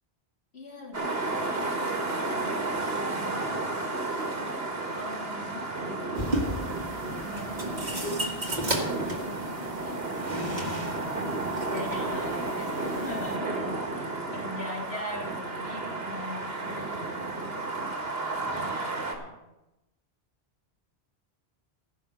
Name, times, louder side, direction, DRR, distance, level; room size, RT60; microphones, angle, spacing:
voice 1, 0.5-3.8 4.9-6.4 7.2-11.1 11.6-19.4, left 2 dB, 90° left, -4 dB, 3.0 m, -42 dB
sound 1, 0.9-19.2, right 2 dB, 65° right, 2.0 m, -32 dB
sound 2, 6.2-13.4, right 1 dB, 45° right, 1.9 m, -34 dB
15.0 x 6.0 x 6.5 m, 0.95 s
omnidirectional pair, 1.1 m